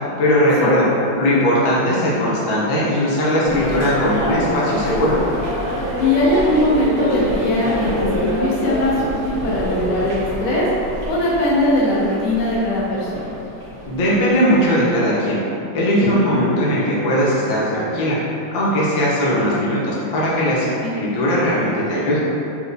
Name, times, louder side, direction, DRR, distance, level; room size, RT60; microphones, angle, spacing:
voice 1, 0.2-0.9 1.2-5.1 13.9-15.4 15.7-18.2 18.5-22.2, equal, 65° left, -7 dB, 1.1 m, -19 dB
sound 1, 3.4-14.7, equal, 80° right, 0.5 m, -26 dB
voice 2, 6.0-10.7 11.1-13.3 16.0-16.2 20.8-20.9, left 1 dB, 90° left, -7 dB, 1.6 m, -20 dB
4.3 x 2.4 x 2.5 m, 2.7 s
omnidirectional pair, 2.2 m